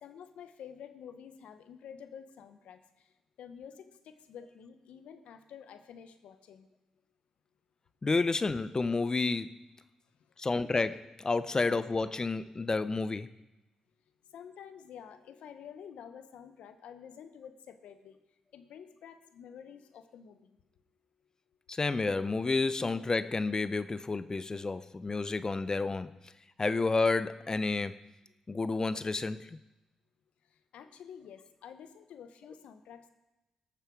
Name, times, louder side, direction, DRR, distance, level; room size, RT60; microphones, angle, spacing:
voice 1, 0.0-3.1 3.4-6.7 14.3-18.2 18.5-20.5 30.7-33.1, left 8 dB, 75° left, 10 dB, 1.0 m, -49 dB
voice 2, 8.0-9.6 10.4-13.3 21.7-26.1 26.6-28.0 28.5-29.5, left 3 dB, 30° left, 13 dB, 0.6 m, -30 dB
18.0 x 6.8 x 4.7 m, 0.98 s
supercardioid pair, 55°, 2 cm